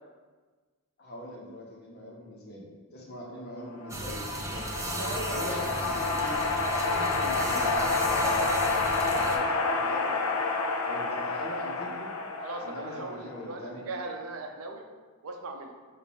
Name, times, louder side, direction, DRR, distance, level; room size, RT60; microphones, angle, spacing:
voice 1, 1.0-4.2 4.5-6.4 6.9-10.5 10.8-12.1 12.6-13.8, equal, 45° left, -4 dB, 1.0 m, -41 dB
sound 1, 3.8-13.4, left 3 dB, 70° left, 0.4 m, -29 dB
sound 2, 3.9-9.4, right 2 dB, 15° right, 0.4 m, -36 dB
voice 2, 12.4-14.8 15.2-15.7, right 2 dB, 70° right, 4 dB, 0.5 m, -39 dB
4.7 x 2.6 x 4.1 m, 1.4 s
head